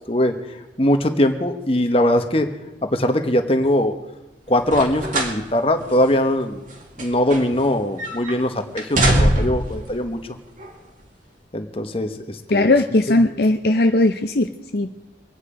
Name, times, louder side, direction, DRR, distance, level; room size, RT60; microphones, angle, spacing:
voice 1, 0.8-2.5 2.8-3.9 4.5-6.6 7.0-10.2 11.5-12.7 13.1-13.2, left 1 dB, 30° left, 6 dB, 1.2 m, -21 dB
sound 1, 4.6-5.4 5.8-5.9 6.7-7.7 8.0-8.4 8.8-9.7 10.6-10.7, right 1 dB, 45° right, 2.2 m, -21 dB
voice 2, 12.5-15.0, left 2 dB, 55° left, 6 dB, 0.6 m, -18 dB
24.5 x 9.4 x 5.0 m, 0.98 s
head